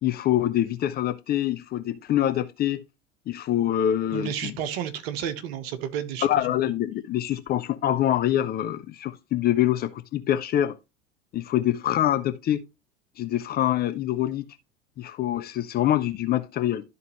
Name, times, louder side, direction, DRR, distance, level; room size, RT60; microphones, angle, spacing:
voice 1, 0.0-2.8 3.3-4.5 6.2-10.7 11.3-12.6 13.2-14.5 15.0-16.8, left 12 dB, 25° left, 0.6 m, -25 dB
voice 2, 4.1-6.3, right 9 dB, 50° right, 1.2 m, -31 dB
12.5 x 4.1 x 3.1 m
figure-of-eight pair, 80°, 38 cm